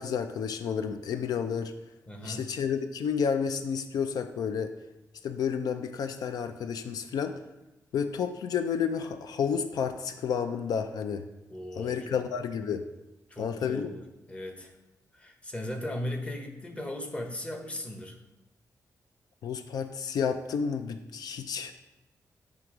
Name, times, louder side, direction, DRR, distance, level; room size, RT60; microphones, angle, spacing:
voice 1, 0.0-1.7 2.2-4.7 5.2-7.3 7.9-11.2 11.8-12.9 13.4-13.9 19.4-21.7, left 7 dB, 80° left, 8 dB, 0.4 m, -31 dB
voice 2, 2.1-2.5 11.5-12.3 13.3-14.7 15.1-18.2, left 1 dB, 20° left, 3 dB, 0.9 m, -37 dB
9.1 x 3.4 x 4.9 m, 0.99 s
wide cardioid pair, 160°, 6 cm